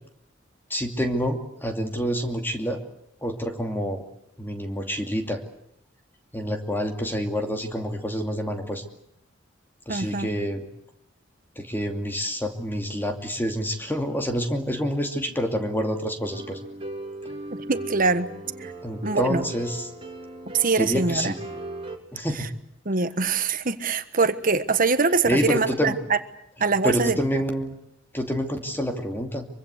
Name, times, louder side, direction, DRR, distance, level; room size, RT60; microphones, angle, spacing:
voice 1, 0.7-2.8 3.2-4.0 4.4-5.4 6.3-8.8 9.9-10.7 11.6-16.6 18.8-19.9 20.8-21.4 22.1-22.5 25.2-26.0 26.8-27.8 28.1-29.5, equal, 10° left, 4 dB, 2.6 m, -27 dB
voice 2, 9.9-10.3 17.7-18.3 18.6-18.7 19.0-19.5 20.5-21.3 22.4-22.5 22.8-26.2 26.6-27.2, right 4 dB, 45° right, 10 dB, 1.4 m, -23 dB
sound 1, 16.2-22.0, right 2 dB, 30° right, 2.8 m, -38 dB
24.5 x 24.0 x 8.2 m, 0.77 s
head